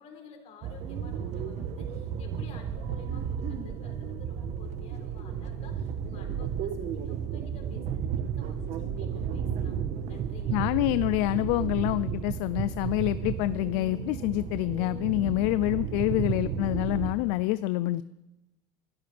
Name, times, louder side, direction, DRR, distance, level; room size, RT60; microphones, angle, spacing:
voice 1, 0.0-10.6, left 6 dB, 50° left, 2 dB, 3.8 m, -51 dB
sound 1, 0.6-17.1, right 8 dB, 55° right, 1.3 m, -33 dB
voice 2, 10.5-18.0, left 17 dB, 70° left, 15 dB, 0.4 m, -27 dB
27.0 x 12.5 x 3.5 m, 1.0 s
supercardioid pair, 115°, 14 cm